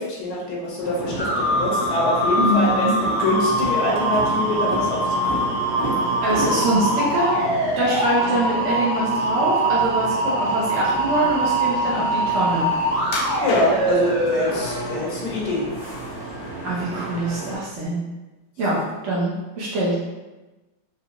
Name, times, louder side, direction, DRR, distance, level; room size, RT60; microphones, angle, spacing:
voice 1, 0.0-5.6 8.3-8.4 10.2-10.3 13.4-15.7, left 2 dB, 90° left, -4 dB, 1.8 m, -25 dB
sound 1, 0.8-17.6, right 2 dB, 15° right, 0.8 m, -32 dB
sound 2, 1.2-14.9, right 1 dB, 30° left, 1.2 m, -23 dB
voice 2, 2.4-3.0 6.2-7.4 7.8-12.7 16.6-18.0 18.6-20.0, right 1 dB, 60° right, -6 dB, 0.8 m, -24 dB
sound 3, 13.1-14.1 14.8-15.4 15.8-16.8 17.1-17.3 17.8-17.9, left 2 dB, 70° left, 0.9 m, -31 dB
4.7 x 2.5 x 2.9 m, 1.1 s
omnidirectional pair, 2.2 m